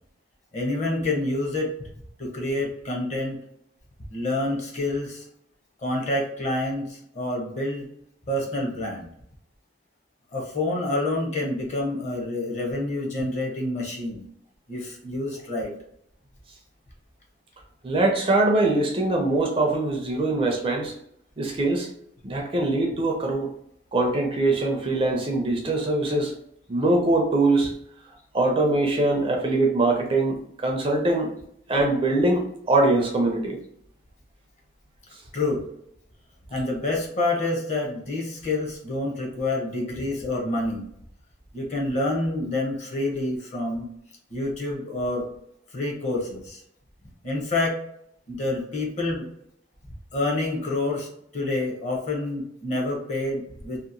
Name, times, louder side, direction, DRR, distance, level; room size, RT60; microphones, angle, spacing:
voice 1, 0.5-1.7 2.2-3.4 4.1-5.2 5.8-7.9 8.3-9.1 10.3-14.2 14.7-15.7 35.3-35.6 36.5-40.9 41.5-43.9 44.3-45.3 45.7-46.6 47.2-47.8 48.3-49.3 50.1-51.1 51.3-53.8, left 2 dB, 40° left, -1 dB, 0.7 m, -27 dB
voice 2, 17.8-20.9 21.4-21.9 22.2-23.5 23.9-26.3 26.7-27.7 28.3-31.3 31.7-33.6, right 2 dB, 30° right, 1 dB, 0.4 m, -22 dB
2.8 x 2.1 x 2.5 m, 0.72 s
head